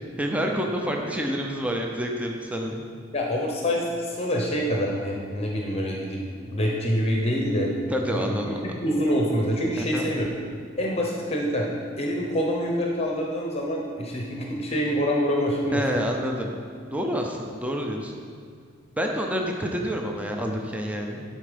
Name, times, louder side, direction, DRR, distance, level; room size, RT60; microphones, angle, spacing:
voice 1, 0.2-2.8 7.9-8.6 9.8-10.1 15.7-16.5 16.9-18.1 19.0-21.2, equal, 5° right, 1 dB, 0.6 m, -28 dB
voice 2, 3.1-7.7 8.1-10.3 10.8-11.7 12.0-15.8, equal, 35° left, -1 dB, 0.8 m, -26 dB
11.0 x 4.3 x 5.1 m, 2.1 s
head